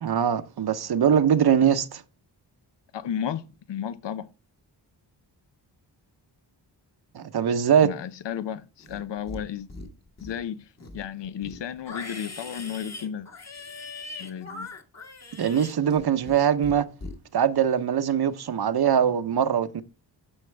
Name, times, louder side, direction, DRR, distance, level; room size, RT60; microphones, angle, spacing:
voice 1, 0.0-2.0 7.1-7.9 15.4-16.9 17.3-19.8, right 8 dB, 60° right, 0.8 m, -22 dB
voice 2, 2.9-4.3 7.8-9.7 10.2-10.7 10.9-13.3 14.2-14.7, left 9 dB, 75° left, 0.7 m, -33 dB
Livestock farm animals working animals, 8.8-9.4 9.7-10.4 10.8-16.4 16.6-17.1, left 3 dB, 35° left, 1.6 m, -40 dB
9.8 x 6.3 x 3.3 m
wide cardioid pair, 90°, 43 cm